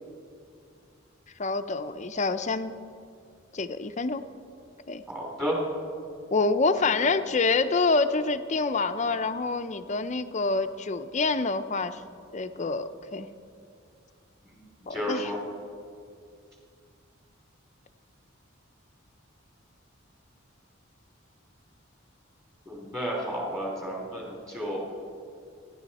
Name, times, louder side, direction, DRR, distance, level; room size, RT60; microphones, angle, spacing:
voice 1, 1.4-2.7 3.5-4.2 4.9-5.0 6.3-12.0 12.3-13.3 14.9-15.3, left 3 dB, 35° left, 10 dB, 0.6 m, -27 dB
voice 2, 5.1-5.6 12.6-12.7 14.4-14.5 14.9-15.4 22.7-24.8, equal, 15° right, -3 dB, 3.0 m, -32 dB
27.0 x 11.0 x 4.2 m, 2.4 s
head